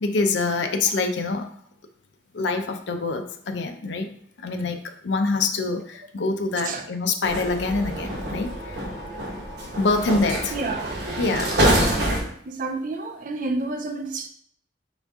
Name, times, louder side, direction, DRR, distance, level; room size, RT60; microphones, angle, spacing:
voice 1, 0.0-1.5 2.3-4.1 4.4-8.5 9.8-10.5 11.2-11.6, left 3 dB, 75° left, 0.5 m, -25 dB
sound 1, 7.2-12.2, right 1 dB, 65° right, 1.3 m, -26 dB
voice 2, 10.5-10.9 11.7-14.3, right 3 dB, 45° right, 0.5 m, -30 dB
4.1 x 3.4 x 3.5 m
head